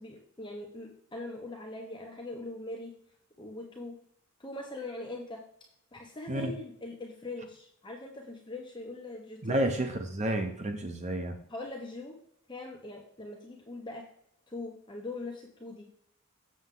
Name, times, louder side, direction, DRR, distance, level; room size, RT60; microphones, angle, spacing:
voice 1, 0.0-2.9 3.4-4.0 4.4-5.4 5.9-9.7 11.5-12.1 12.5-14.1 14.5-15.9, left 2 dB, 25° left, 0 dB, 1.0 m, -41 dB
voice 2, 9.4-11.4, right 1 dB, 35° right, 6 dB, 0.7 m, -30 dB
7.4 x 7.0 x 3.8 m, 0.70 s
head